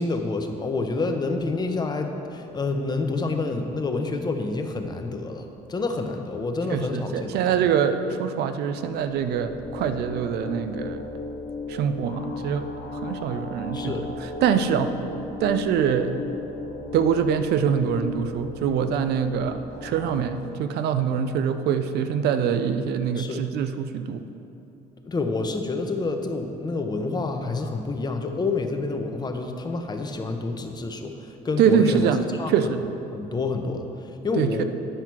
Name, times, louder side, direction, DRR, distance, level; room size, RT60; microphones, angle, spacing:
voice 1, 0.0-7.6 13.7-14.1 23.2-23.4 25.0-32.0 32.3-32.7 33.1-34.6, left 3 dB, 25° left, 5 dB, 0.8 m, -28 dB
voice 2, 6.7-11.0 11.7-12.7 12.9-13.9 14.4-14.9 15.4-16.1 16.9-24.2 31.6-32.8 34.4-34.6, right 7 dB, 75° right, 10 dB, 0.6 m, -24 dB
sound 1, 8.8-20.2, left 3 dB, 60° left, 1.3 m, -36 dB
10.0 x 5.8 x 4.6 m, 2.7 s
cardioid pair, 110°, 17 cm